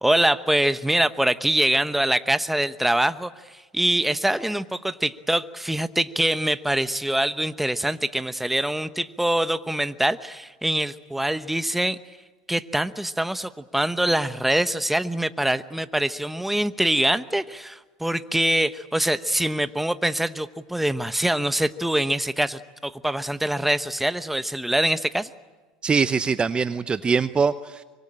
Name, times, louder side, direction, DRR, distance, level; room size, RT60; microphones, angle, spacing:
voice 1, 0.0-12.0 12.5-25.3, right 1 dB, 5° right, 12 dB, 1.1 m, -24 dB
voice 2, 25.8-27.8, right 5 dB, 25° right, 13 dB, 0.8 m, -23 dB
25.0 x 23.5 x 8.8 m, 1.3 s
hypercardioid pair, 85°, 4 cm